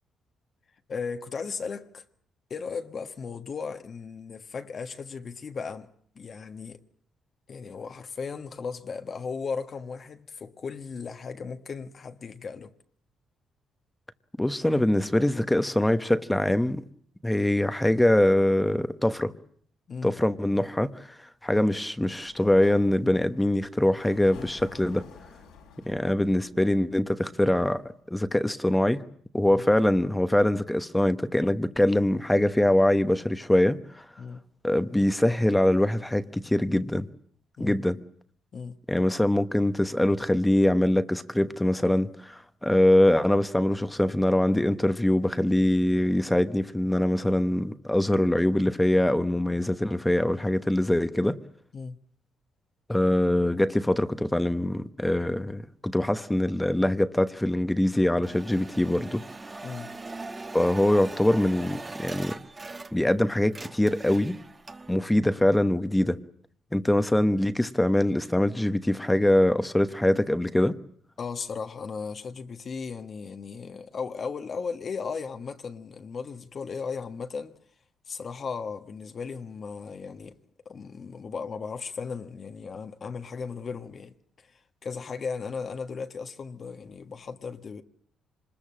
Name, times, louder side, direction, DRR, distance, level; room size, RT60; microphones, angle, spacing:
voice 1, 0.9-2.0 2.5-5.9 6.1-6.8 7.5-12.7 19.9-20.2 21.5-21.7 29.5-29.6 34.2-34.4 37.6-37.8 38.5-38.8 51.7-52.0 59.6-59.9 71.2-77.5 78.1-80.4 80.6-84.2 84.4-87.8, left 5 dB, 45° left, 1.4 m, -36 dB
voice 2, 14.4-16.8 17.2-19.3 20.0-21.1 21.4-25.0 25.8-27.8 28.1-29.0 29.3-33.8 34.6-37.1 37.6-38.0 38.9-51.4 52.9-59.2 59.5-59.6 60.5-62.4 62.9-64.4 64.9-66.2 66.7-70.8, left 1 dB, 10° left, 1.1 m, -23 dB
Sliding door, 22.1-27.8, left 6 dB, 90° left, 5.7 m, -52 dB
sound 1, 58.2-63.2 63.4-65.0, right 3 dB, 25° right, 1.2 m, -41 dB
25.5 x 20.5 x 7.5 m
cardioid pair, 90°, 0 cm